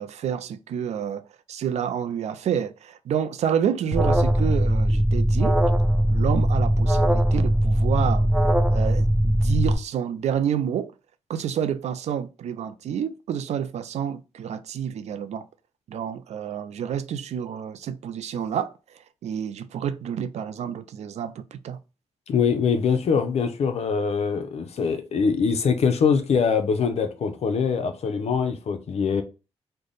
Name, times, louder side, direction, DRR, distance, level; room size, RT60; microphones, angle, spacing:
voice 1, 0.0-5.6 6.1-10.9 11.3-15.5 15.9-21.8, right 8 dB, 80° right, 0.4 m, -29 dB
Alarm, 3.9-9.7, equal, 5° right, 0.4 m, -20 dB
voice 2, 22.3-29.2, left 6 dB, 70° left, 0.6 m, -23 dB
3.3 x 2.1 x 3.8 m
cardioid pair, 90°, 11 cm